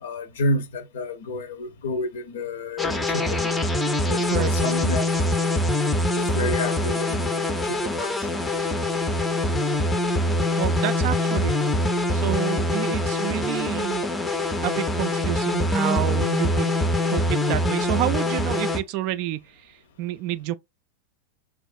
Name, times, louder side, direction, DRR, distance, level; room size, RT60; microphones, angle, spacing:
voice 1, 0.0-3.5 4.1-5.3 6.0-8.3, left 2 dB, 60° left, 0.6 m, -30 dB
sound 1, 2.8-18.8, left 1 dB, 10° left, 0.5 m, -24 dB
voice 2, 10.6-11.5 12.1-14.1 14.6-16.7 17.1-20.5, right 13 dB, 45° right, 0.3 m, -29 dB
4.5 x 2.4 x 2.4 m
figure-of-eight pair, 90°, 0 cm